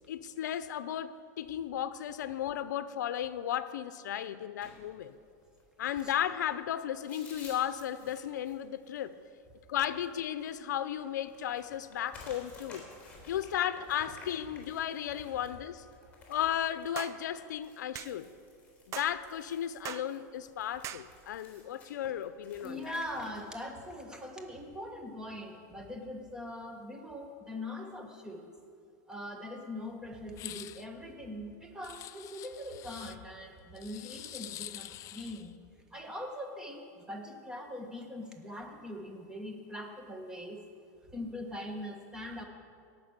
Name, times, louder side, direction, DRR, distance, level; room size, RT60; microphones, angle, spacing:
voice 1, 0.0-5.1 5.8-9.2 9.7-12.9 13.3-15.8 16.3-18.3 18.9-22.9, left 10 dB, 85° left, 13 dB, 0.6 m, -35 dB
sound 1, 4.6-23.3, left 3 dB, 15° left, 3.6 m, -56 dB
sound 2, 17.0-17.2 17.9-18.1 18.9-19.1 19.8-20.1 20.8-21.1, right 11 dB, 30° right, 0.4 m, -40 dB
voice 2, 22.6-28.5 29.1-35.6 35.9-40.6 41.1-42.4, left 1 dB, 10° right, 2 dB, 1.5 m, -42 dB
sound 3, 30.3-30.9 31.8-33.2 33.8-35.5, left 14 dB, 35° left, 0.4 m, -45 dB
17.5 x 6.1 x 6.6 m, 2.3 s
supercardioid pair, 135°, 9 cm